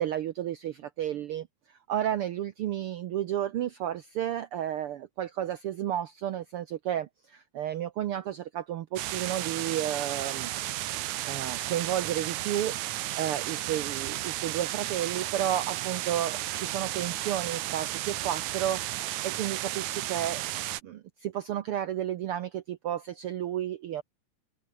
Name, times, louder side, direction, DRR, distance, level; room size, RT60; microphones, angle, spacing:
voice 1, 0.0-10.5 11.2-20.6 20.8-24.0, right 11 dB, 65° right, 1.4 m, -32 dB
sound 1, 9.0-20.8, right 15 dB, 85° right, 2.3 m, -33 dB
omnidirectional pair, 3.3 m